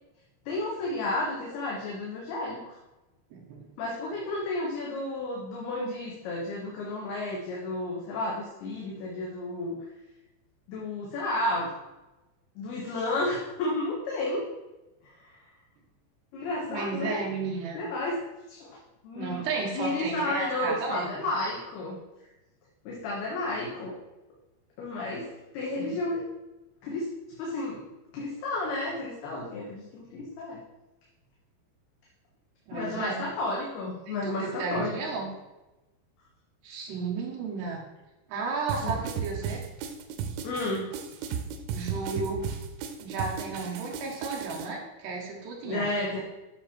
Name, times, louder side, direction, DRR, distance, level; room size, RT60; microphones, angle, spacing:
voice 1, 0.5-2.8 3.8-9.8 10.7-11.7 12.6-14.5 16.3-17.2 17.7-18.2 18.5-18.8 19.0-22.0 22.8-24.0 24.8-25.3 25.5-26.3 26.8-27.1 27.4-27.8 28.1-30.6 32.7-35.0 38.8-38.9 40.4-40.9 45.6-46.2, left 2 dB, 65° left, -4 dB, 3.2 m, -32 dB
voice 2, 3.3-3.7 16.7-17.8 19.1-21.3 25.8-26.0 32.7-33.2 34.1-35.3 36.6-37.8 38.3-39.6 41.7-42.4 43.0-45.9, right 4 dB, 70° right, -1 dB, 3.6 m, -33 dB
sound 1, 38.7-44.7, right 7 dB, 90° right, 3.1 m, -35 dB
10.5 x 6.6 x 4.4 m, 1.0 s
omnidirectional pair, 5.3 m